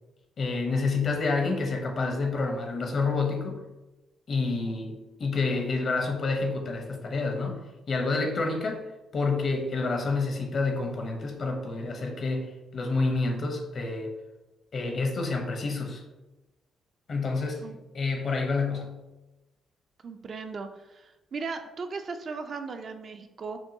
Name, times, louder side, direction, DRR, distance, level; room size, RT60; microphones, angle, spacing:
voice 1, 0.4-3.6 4.3-7.6 7.9-8.8 9.1-14.1 14.7-16.0 17.1-17.6 17.9-19.0, left 3 dB, 50° left, 3 dB, 0.8 m, -28 dB
voice 2, 20.0-23.6, right 4 dB, 50° right, 7 dB, 0.4 m, -37 dB
6.0 x 2.3 x 2.7 m, 1.0 s
cardioid pair, 95°, 0 cm